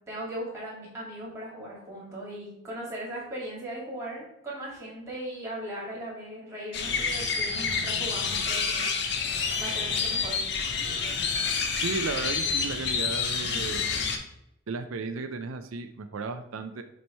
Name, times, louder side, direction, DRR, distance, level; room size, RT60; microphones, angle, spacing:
voice 1, 0.1-8.9 9.6-10.4, right 1 dB, 15° right, -6 dB, 2.2 m, -38 dB
sound 1, 6.7-14.2, left 5 dB, 55° left, 0.8 m, -28 dB
voice 2, 11.8-13.9 14.7-16.8, right 4 dB, 90° right, 8 dB, 0.5 m, -34 dB
7.1 x 3.1 x 4.4 m, 0.84 s
head